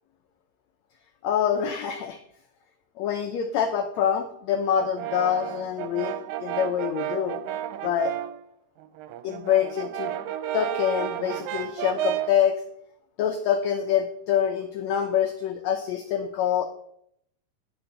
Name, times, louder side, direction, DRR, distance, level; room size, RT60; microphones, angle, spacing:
voice 1, 1.2-2.2 3.0-7.4 7.8-8.1 9.2-10.1 10.5-12.6 13.2-16.7, left 9 dB, 80° left, 6 dB, 1.6 m, -25 dB
Brass instrument, 4.8-8.4 8.8-12.4, right 12 dB, 80° right, 1.7 m, -32 dB
11.0 x 9.6 x 4.0 m, 0.71 s
omnidirectional pair, 4.0 m